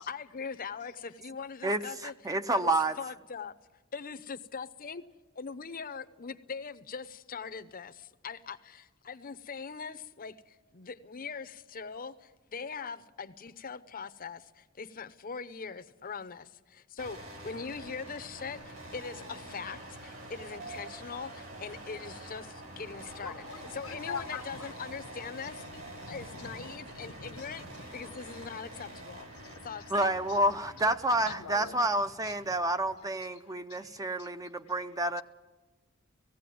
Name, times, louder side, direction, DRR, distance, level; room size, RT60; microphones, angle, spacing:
voice 1, 0.1-2.7 3.0-3.6 3.9-5.0 5.4-23.4 23.7-25.6 26.1-27.7 27.9-29.3 29.6-30.1, left 5 dB, 40° left, 12 dB, 0.7 m, -41 dB
voice 2, 0.8-1.2 23.0-28.4 28.8-29.0 29.3-30.4 30.8-35.2, left 5 dB, 85° left, 9 dB, 1.1 m, -47 dB
voice 3, 1.6-3.0 29.9-35.2, right 1 dB, 15° right, 10 dB, 0.6 m, -29 dB
sound 1, 17.0-33.0, right 1 dB, 70° right, 4.7 m, -47 dB
sound 2, 18.5-28.2, right 2 dB, 85° right, 6.9 m, -52 dB
18.0 x 16.0 x 9.3 m, 1.2 s
head